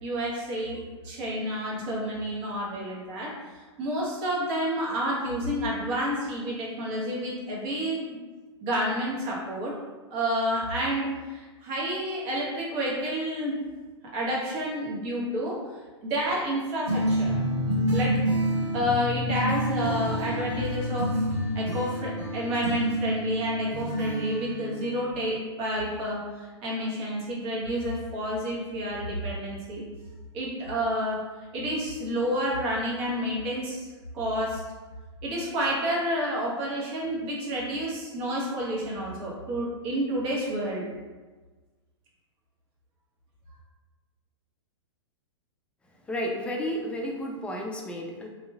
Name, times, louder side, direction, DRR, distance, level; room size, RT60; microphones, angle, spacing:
voice 1, 0.0-8.2 8.6-9.7 10.1-13.6 14.1-15.6 16.0-17.3 17.9-18.1 18.7-21.3 21.5-29.8 30.3-31.2 31.5-33.9 34.1-34.6 35.2-40.9, equal, 40° right, -4 dB, 0.9 m, -29 dB
sound 1, 16.9-25.3, equal, 90° right, 1.1 m, -28 dB
voice 2, 46.1-48.3, equal, 5° left, 0 dB, 0.3 m, -32 dB
2.9 x 2.3 x 2.2 m, 1.3 s
hypercardioid pair, 110°, 15 cm